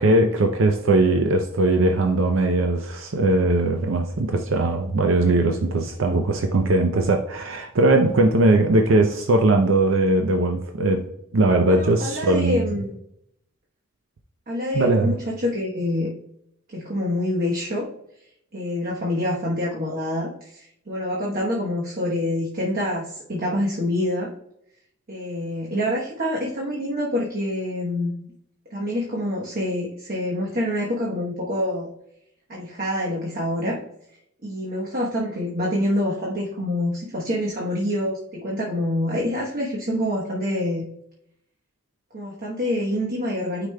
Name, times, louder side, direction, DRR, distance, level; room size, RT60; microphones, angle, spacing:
voice 1, 0.0-11.1 11.3-12.6 14.7-15.1, right 2 dB, 70° right, 4 dB, 0.5 m, -20 dB
voice 2, 11.6-12.9 14.5-16.1 16.7-17.9 18.5-24.3 25.1-28.1 28.7-31.9 32.5-33.8 34.4-40.8 42.1-43.7, left 1 dB, 45° right, -3 dB, 1.0 m, -26 dB
9.6 x 5.0 x 2.2 m, 0.75 s
head